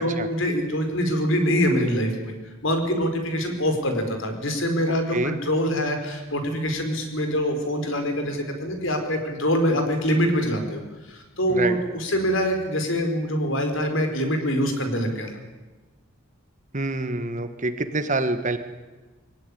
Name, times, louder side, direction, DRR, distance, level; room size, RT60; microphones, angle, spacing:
voice 1, 0.0-2.3 2.6-15.4, equal, 65° left, 5 dB, 4.5 m, -24 dB
voice 2, 16.7-18.6, right 2 dB, 35° right, 9 dB, 1.5 m, -26 dB
23.5 x 17.5 x 10.0 m, 1.2 s
head